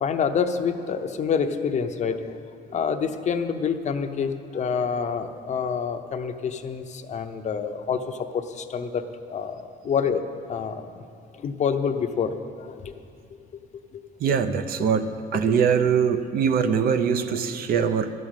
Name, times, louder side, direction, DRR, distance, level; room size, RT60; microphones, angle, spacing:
voice 1, 0.0-2.4 2.7-10.2 10.5-10.9 11.3-12.9 13.9-14.0 14.3-14.4 15.3-15.4, left 6 dB, 45° left, 8 dB, 0.7 m, -27 dB
voice 2, 14.2-18.1, right 7 dB, 60° right, 10 dB, 0.7 m, -22 dB
12.5 x 6.4 x 8.9 m, 2.4 s
cardioid pair, 110°, 17 cm